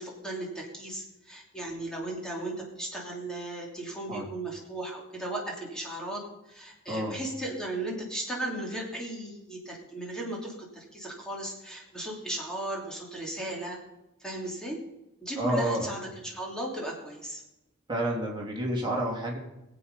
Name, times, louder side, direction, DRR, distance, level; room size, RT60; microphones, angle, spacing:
voice 1, 0.0-13.8 14.2-14.8 15.2-17.4, right 1 dB, 5° left, -2 dB, 3.0 m, -36 dB
voice 2, 6.9-7.2 15.4-15.9 17.9-19.4, right 1 dB, 20° right, -1 dB, 3.3 m, -29 dB
21.5 x 8.2 x 5.4 m, 0.95 s
head